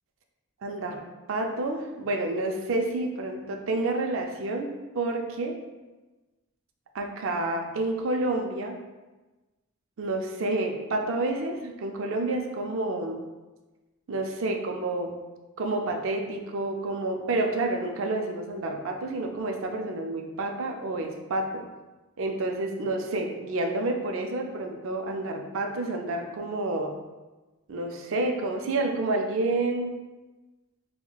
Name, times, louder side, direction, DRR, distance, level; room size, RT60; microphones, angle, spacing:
voice 1, 0.6-1.0 1.3-5.6 6.9-8.8 10.0-13.2 14.1-15.1 15.6-21.6 22.2-26.9 27.7-29.9, right 2 dB, 60° right, 3 dB, 0.4 m, -29 dB
5.5 x 2.1 x 2.3 m, 1.2 s
head